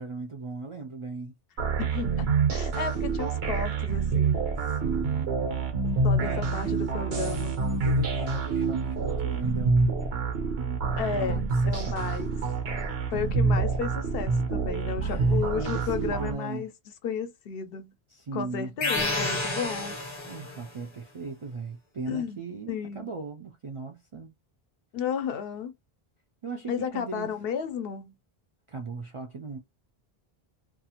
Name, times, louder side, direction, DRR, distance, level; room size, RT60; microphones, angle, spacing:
voice 1, 0.0-1.3 4.6-5.4 5.9-9.9 11.1-12.1 15.0-16.7 18.1-18.7 20.2-24.3 26.4-27.4 28.7-29.6, right 4 dB, 50° right, 0.4 m, -38 dB
sound 1, 1.6-16.3, right 4 dB, 80° right, 1.1 m, -27 dB
voice 2, 1.8-4.5 6.0-7.5 11.0-12.3 13.1-16.7 17.0-17.9 18.3-20.0 22.1-22.4 22.7-23.1 24.9-25.7 26.7-28.1, left 7 dB, 70° left, 0.7 m, -33 dB
sound 2, 18.8-20.7, left 2 dB, 30° left, 0.7 m, -30 dB
2.5 x 2.4 x 2.8 m
omnidirectional pair, 1.0 m